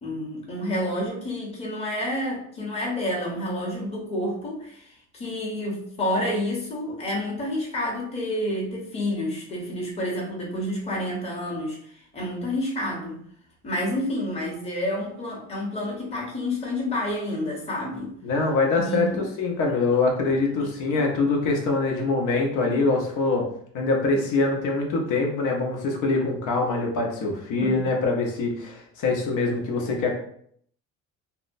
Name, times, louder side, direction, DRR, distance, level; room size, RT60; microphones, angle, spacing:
voice 1, 0.0-13.2 13.6-18.1 18.7-19.2 20.9-21.1 27.6-27.8, left 1 dB, 20° left, -4 dB, 0.9 m, -29 dB
voice 2, 18.2-23.5 23.7-30.2, left 3 dB, 65° left, 1 dB, 0.8 m, -24 dB
2.8 x 2.1 x 2.5 m, 0.65 s
supercardioid pair, 85°, 32 cm